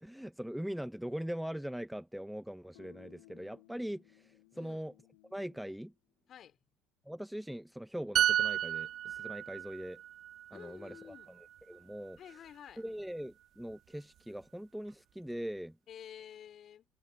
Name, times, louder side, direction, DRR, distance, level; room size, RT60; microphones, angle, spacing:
voice 1, 0.0-4.9 5.3-5.9 7.0-10.0 10.5-11.1 11.7-12.2 12.8-15.8, equal, ahead, 1.2 m, -41 dB
sound 1, 2.7-5.9, left 26 dB, 60° left, 2.4 m, -61 dB
sound 2, 8.2-11.8 12.1-12.3, right 11 dB, 40° right, 0.5 m, -33 dB
voice 2, 10.5-11.3 12.2-12.8 15.9-16.9, left 9 dB, 40° left, 5.3 m, -51 dB
figure-of-eight pair, 75°, 0 cm